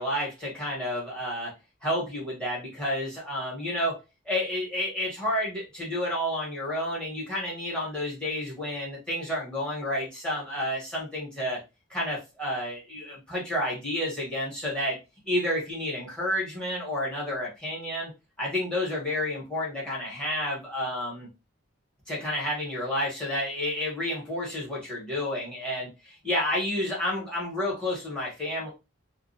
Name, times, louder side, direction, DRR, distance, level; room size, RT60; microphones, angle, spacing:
voice 1, 0.0-1.5 1.8-11.6 11.9-15.0 15.3-18.1 18.4-21.3 22.1-28.7, left 1 dB, 5° left, -6 dB, 1.0 m, -30 dB
2.3 x 2.1 x 2.6 m, 0.27 s
head